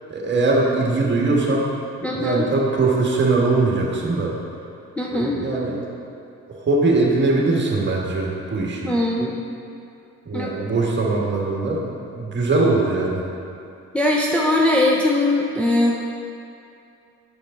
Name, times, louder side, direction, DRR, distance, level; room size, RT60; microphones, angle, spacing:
voice 1, 0.1-1.7 2.1-4.3 5.1-5.8 6.5-8.9 10.2-13.2, right 3 dB, 35° right, -2 dB, 1.5 m, -21 dB
voice 2, 2.0-2.5 5.0-5.4 8.8-9.4 10.3-10.7 13.9-15.9, left 1 dB, 5° left, -3 dB, 0.7 m, -20 dB
8.0 x 6.8 x 3.8 m, 2.6 s
cardioid pair, 90°, 30 cm